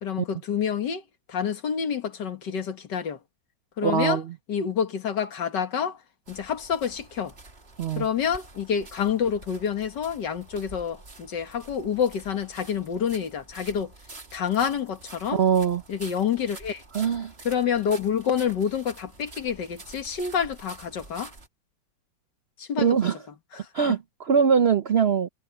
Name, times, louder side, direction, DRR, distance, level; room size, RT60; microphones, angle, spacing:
voice 1, 0.0-1.0 1.3-3.2 3.8-4.2 4.5-6.0 6.3-7.3 8.0-13.9 14.3-15.4 15.9-16.8 17.4-21.3 22.6-23.1 23.6-23.7, left 7 dB, 70° left, 2.2 m, -28 dB
voice 2, 3.8-4.2 7.8-8.1 15.3-15.8 16.9-17.3 22.8-23.2 23.7-25.3, right 7 dB, 70° right, 0.5 m, -22 dB
sound 1, 6.3-21.5, right 3 dB, 35° right, 2.6 m, -48 dB
omnidirectional pair, 2.0 m